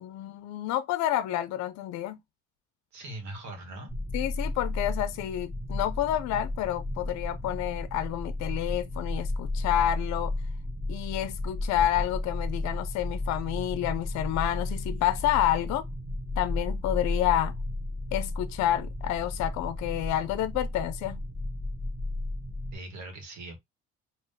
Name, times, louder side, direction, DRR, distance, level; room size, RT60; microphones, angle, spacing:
voice 1, 0.0-2.2 4.1-10.3 10.9-15.9 16.4-17.5 18.1-21.2, left 12 dB, 65° left, 0.4 m, -29 dB
voice 2, 2.9-3.9 22.7-23.6, right 2 dB, 70° right, 1.3 m, -41 dB
sound 1, 3.9-22.8, left 2 dB, 5° right, 0.6 m, -33 dB
3.6 x 2.4 x 2.6 m
cardioid pair, 120°, 30 cm